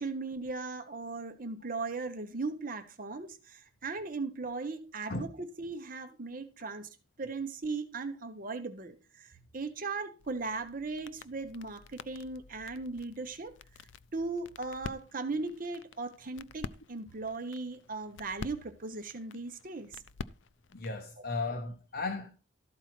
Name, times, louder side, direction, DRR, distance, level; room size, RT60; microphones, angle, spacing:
voice 1, 0.0-6.9 7.2-13.6 14.1-20.0, right 3 dB, 45° right, 1.0 m, -38 dB
sound 1, 10.2-21.1, left 4 dB, 75° left, 0.5 m, -48 dB
voice 2, 20.7-22.3, left 3 dB, 55° left, 1.1 m, -35 dB
13.0 x 4.4 x 6.1 m
head